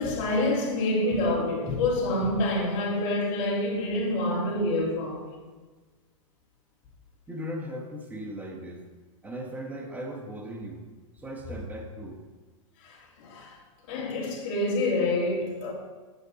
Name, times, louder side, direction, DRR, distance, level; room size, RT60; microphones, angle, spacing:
voice 1, 0.0-5.5 12.8-13.6 13.9-15.7, left 1 dB, 50° left, 2.8 m, -27 dB
voice 2, 7.3-8.8 9.2-10.9 11.1-12.2, equal, 10° right, 1.2 m, -38 dB
8.3 x 7.7 x 4.1 m
hypercardioid pair, 130°, 17 cm